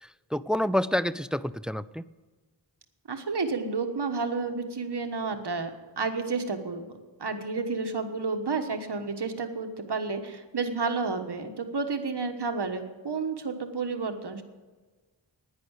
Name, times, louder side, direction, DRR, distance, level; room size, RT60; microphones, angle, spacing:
voice 1, 0.0-2.0, left 1 dB, ahead, 16 dB, 0.3 m, -28 dB
voice 2, 3.1-5.7 6.0-6.9 7.2-14.4, right 4 dB, 70° right, 6 dB, 1.3 m, -31 dB
10.5 x 10.0 x 8.2 m, 1.3 s
wide cardioid pair, 75°, 42 cm